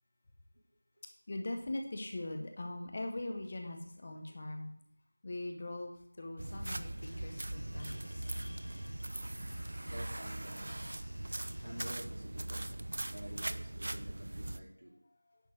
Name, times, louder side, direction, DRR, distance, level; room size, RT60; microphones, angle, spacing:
voice 1, 1.3-4.7 5.2-8.1 15.1-15.4, left 2 dB, 15° left, 3 dB, 0.8 m, -41 dB
sound 1, 6.4-14.6, right 1 dB, 30° right, 0.4 m, -40 dB
sound 2, 6.9-13.4, left 1 dB, 50° left, 3.3 m, -63 dB
sound 3, 7.0-12.0, left 1 dB, 85° left, 3.5 m, -59 dB
voice 2, 9.9-10.9 11.6-14.9, right 1 dB, 75° right, -6 dB, 3.7 m, -49 dB
10.5 x 5.1 x 7.3 m, 0.70 s
figure-of-eight pair, 180°, 0 cm